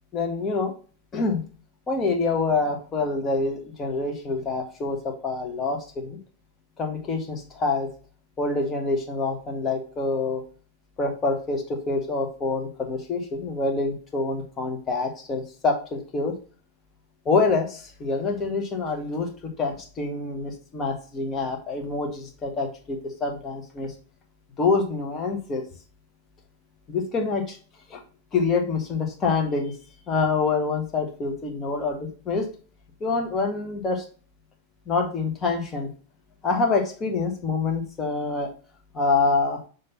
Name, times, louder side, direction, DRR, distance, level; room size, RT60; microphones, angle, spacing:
voice 1, 0.1-0.7 1.1-1.4 1.9-6.2 6.8-7.9 8.4-10.4 11.0-16.3 17.3-23.9 24.6-25.6 26.9-27.6 27.9-28.0 28.3-29.7 30.1-32.5 33.0-34.0 34.9-35.9 36.4-38.5 38.9-39.6, left 3 dB, 25° left, 3 dB, 1.8 m, -26 dB
7.6 x 3.8 x 4.1 m, 0.39 s
figure-of-eight pair, 90°, 0 cm